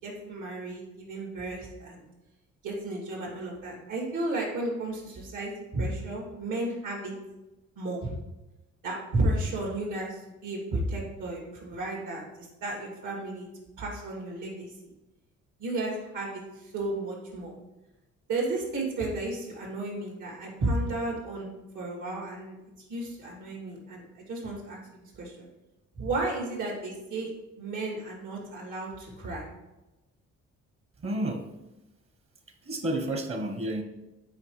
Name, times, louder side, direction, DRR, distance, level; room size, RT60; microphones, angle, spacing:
voice 1, 0.0-2.0 2.6-7.1 7.8-8.1 8.8-13.5 13.8-14.7 15.6-17.5 18.3-21.5 21.7-22.6 22.9-25.5 25.9-27.3 27.6-29.5, right 2 dB, 80° right, -2 dB, 2.4 m, -33 dB
voice 2, 31.0-31.5 32.6-33.8, right 1 dB, 45° right, 5 dB, 1.0 m, -30 dB
8.4 x 4.9 x 3.2 m, 1.0 s
cardioid pair, 90°, 30 cm